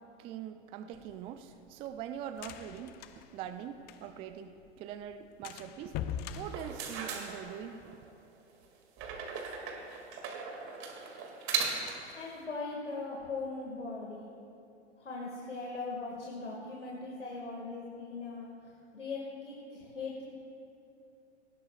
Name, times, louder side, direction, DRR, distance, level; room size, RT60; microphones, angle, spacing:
voice 1, 0.0-3.0 3.3-6.0 6.3-7.9, right 9 dB, 15° right, 10 dB, 0.3 m, -43 dB
sound 1, 0.9-4.3 4.6-4.7 5.0-5.1 5.4-7.5, left 8 dB, 30° left, 0.6 m, -42 dB
sound 2, 6.4-8.0 9.0-12.1, right 5 dB, 40° right, 2.3 m, -37 dB
voice 2, 12.1-14.2 15.0-20.3, left 3 dB, 85° left, -3 dB, 2.1 m, -40 dB
19.0 x 15.0 x 2.4 m, 2.8 s
hypercardioid pair, 110°, 35 cm